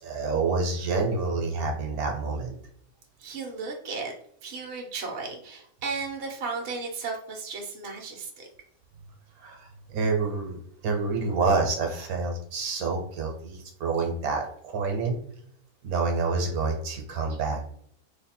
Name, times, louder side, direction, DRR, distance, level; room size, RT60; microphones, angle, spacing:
voice 1, 0.0-2.6 9.4-15.2 15.8-17.6, right 4 dB, 85° right, 2 dB, 1.3 m, -28 dB
voice 2, 3.2-4.1 4.4-8.5, right 4 dB, 55° right, 1 dB, 1.0 m, -35 dB
3.2 x 2.2 x 4.2 m, 0.66 s
omnidirectional pair, 1.5 m